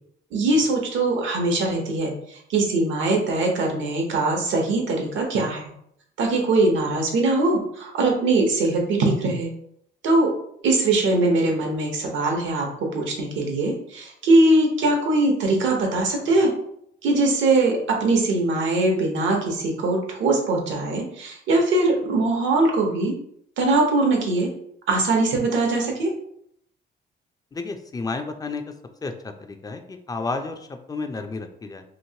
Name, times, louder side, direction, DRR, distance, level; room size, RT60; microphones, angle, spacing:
voice 1, 0.3-5.6 6.2-9.5 10.0-10.3 10.6-16.5 17.0-23.1 23.6-24.5 24.9-26.1, right 2 dB, 75° right, 1 dB, 0.9 m, -21 dB
voice 2, 27.5-28.6 29.0-31.8, left 3 dB, 20° left, 6 dB, 0.4 m, -31 dB
3.0 x 2.7 x 2.7 m, 0.70 s
cardioid pair, 90°, 20 cm